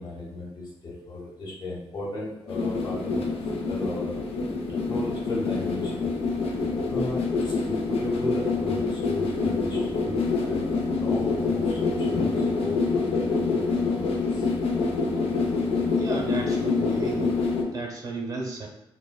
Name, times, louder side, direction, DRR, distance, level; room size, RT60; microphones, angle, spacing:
voice 1, 0.0-4.2 4.9-6.1 6.9-13.3 13.6-14.5, left 2 dB, 45° left, -4 dB, 0.9 m, -35 dB
sound 1, 2.5-17.6, left 4 dB, 85° left, 0.4 m, -26 dB
voice 2, 15.9-17.3 17.7-18.7, right 3 dB, 40° right, 0 dB, 0.7 m, -33 dB
3.2 x 2.1 x 2.2 m, 0.93 s
cardioid pair, 95°, 10 cm